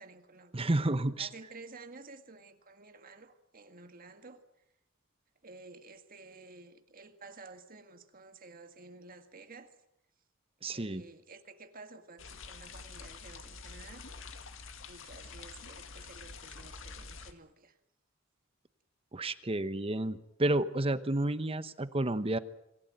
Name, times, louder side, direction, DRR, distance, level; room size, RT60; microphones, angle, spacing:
voice 1, 0.0-0.7 1.2-4.4 5.4-9.7 10.7-14.1 14.9-17.8, right 3 dB, 45° right, 1.9 m, -52 dB
voice 2, 0.5-1.3 10.6-11.0 19.1-22.4, right 1 dB, 25° right, 1.0 m, -31 dB
sound 1, 12.2-17.3, left 4 dB, 65° left, 2.2 m, -47 dB
26.0 x 16.5 x 9.1 m
head